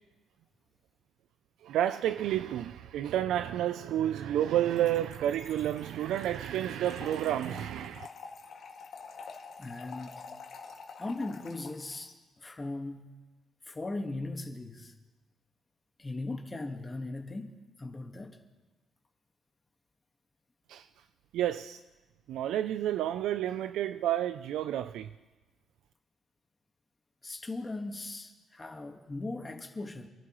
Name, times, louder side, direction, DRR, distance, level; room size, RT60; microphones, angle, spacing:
voice 1, 1.6-8.1 20.7-20.9 21.3-21.8 22.3-25.1, right 11 dB, 85° right, 0.4 m, -30 dB
Trickle dribble / Fill (with liquid), 4.8-12.1, left 5 dB, 65° left, 2.1 m, -48 dB
voice 2, 9.6-10.2 11.0-12.1 12.4-13.1 13.6-14.9 16.0-18.4 27.2-30.1, left 2 dB, 25° left, 1.5 m, -38 dB
28.0 x 11.0 x 3.1 m
cardioid pair, 90°, 0 cm